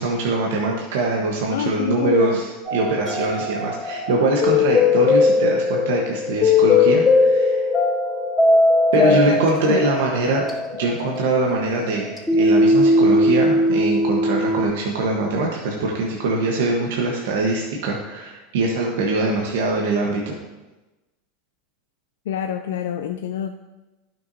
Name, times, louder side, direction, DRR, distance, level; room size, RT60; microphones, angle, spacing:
voice 1, 0.0-7.7 8.9-10.4 10.8-20.3, right 2 dB, 75° right, -1 dB, 1.1 m, -23 dB
voice 2, 1.5-2.4 8.9-9.4 9.7-9.8 22.3-23.5, left 9 dB, 80° left, 6 dB, 0.4 m, -26 dB
sound 1, 2.6-14.7, left 2 dB, 15° left, 2.5 m, -19 dB
12.0 x 5.9 x 2.7 m, 1.1 s
hypercardioid pair, 100°, 0 cm